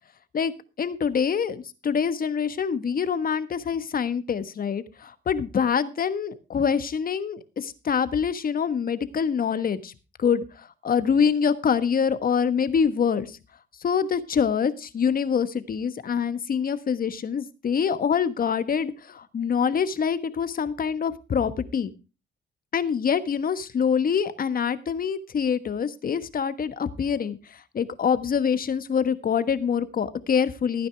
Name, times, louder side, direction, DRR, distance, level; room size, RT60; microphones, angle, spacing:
voice 1, 0.3-9.9 10.2-13.4 13.8-21.9 22.7-30.9, left 7 dB, 45° left, 13 dB, 1.3 m, -25 dB
15.5 x 9.4 x 3.4 m, 0.31 s
cardioid pair, 90°, 20 cm